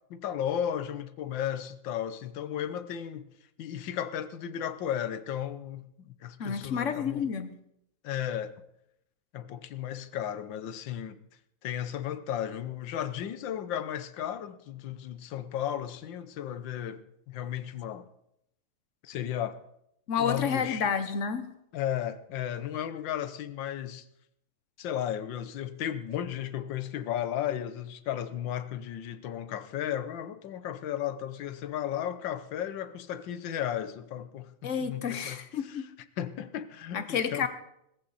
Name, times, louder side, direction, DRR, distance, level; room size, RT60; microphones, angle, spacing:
voice 1, 0.1-3.3 3.6-7.3 8.0-8.6 9.3-11.2 11.6-18.1 19.0-19.6 20.2-20.9 21.7-24.1 24.8-35.9 36.2-37.5, left 10 dB, 75° left, 1.5 m, -34 dB
voice 2, 6.4-7.5 20.1-21.5 34.6-35.9 36.9-37.5, left 6 dB, 45° left, 1.1 m, -30 dB
18.5 x 14.5 x 4.2 m
omnidirectional pair, 2.1 m